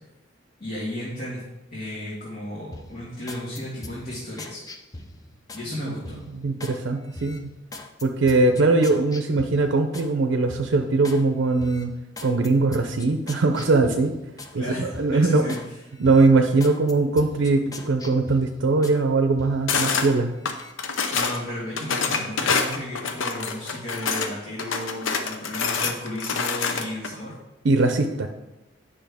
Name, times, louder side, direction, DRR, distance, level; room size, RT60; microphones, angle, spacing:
voice 1, 0.6-1.4 1.7-4.6 5.5-6.2 14.6-15.8 21.1-27.3, left 1 dB, 55° left, -7 dB, 1.7 m, -34 dB
sound 1, 2.7-5.7 6.0-6.8 7.1-10.1 10.5-11.2 11.6-14.6 14.9-15.7 16.0-19.0 19.4-20.1 20.5-20.7, left 2 dB, 20° left, 0.5 m, -42 dB
voice 2, 6.3-7.5 8.0-11.9 12.2-14.1 14.5-15.5 16.0-20.3 27.6-28.3, right 3 dB, 70° right, 6 dB, 0.5 m, -21 dB
sound 2, 19.7-20.1 20.4-21.4 21.8-24.3 24.6-27.1, left 5 dB, 90° left, 0.7 m, -26 dB
9.0 x 5.4 x 3.5 m, 0.99 s
head